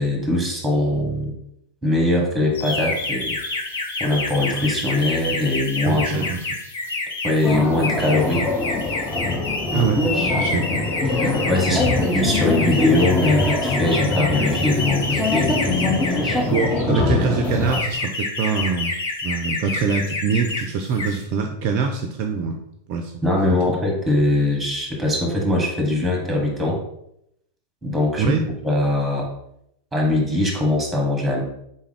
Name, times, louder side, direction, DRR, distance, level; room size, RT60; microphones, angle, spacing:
voice 1, 0.0-1.3 1.8-3.4 4.0-6.3 7.2-8.4 9.7-9.9 11.5-16.4 16.9-17.2 23.2-26.8 27.8-28.3 28.6-29.3 29.9-31.4, left 1 dB, 5° right, 0 dB, 1.4 m, -21 dB
sound 1, 2.5-16.8 17.4-20.6 20.9-21.2, left 3 dB, 65° left, 0.8 m, -28 dB
voice 2, 5.9-6.4 9.7-10.0 10.4-10.8 11.7-12.0 16.5-18.9 19.2-22.6 22.9-23.2 23.5-23.6 28.2-28.4, right 5 dB, 45° right, 5 dB, 0.4 m, -24 dB
sound 2, 7.4-17.8, left 2 dB, 15° left, 0.7 m, -23 dB
4.3 x 3.4 x 3.4 m, 0.78 s
figure-of-eight pair, 90°, 0 cm